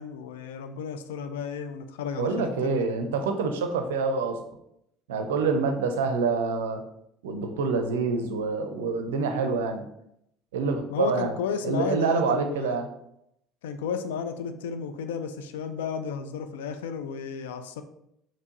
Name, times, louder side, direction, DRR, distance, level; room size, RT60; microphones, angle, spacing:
voice 1, 0.0-3.0 10.9-12.9 13.6-17.8, left 6 dB, 70° left, 9 dB, 0.3 m, -33 dB
voice 2, 2.2-4.4 5.1-6.8 7.2-9.9 10.5-11.3 11.6-12.9, right 4 dB, 70° right, 6 dB, 0.4 m, -26 dB
4.3 x 2.9 x 2.9 m, 0.79 s
figure-of-eight pair, 60°, 0 cm